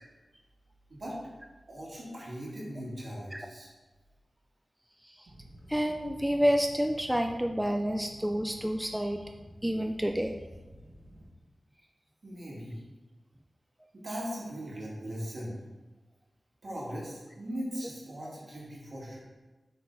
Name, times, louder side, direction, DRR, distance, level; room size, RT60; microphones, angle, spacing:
voice 1, 1.7-3.7 12.2-12.8 13.9-15.6 16.6-19.2, equal, 60° right, -5 dB, 2.2 m, -39 dB
sound 1, 5.3-11.3, equal, 80° right, 1.5 m, -51 dB
voice 2, 5.7-9.2 9.6-10.4, equal, 5° right, 4 dB, 0.4 m, -29 dB
5.8 x 5.4 x 4.1 m, 1.2 s
wide cardioid pair, 75°, 0 cm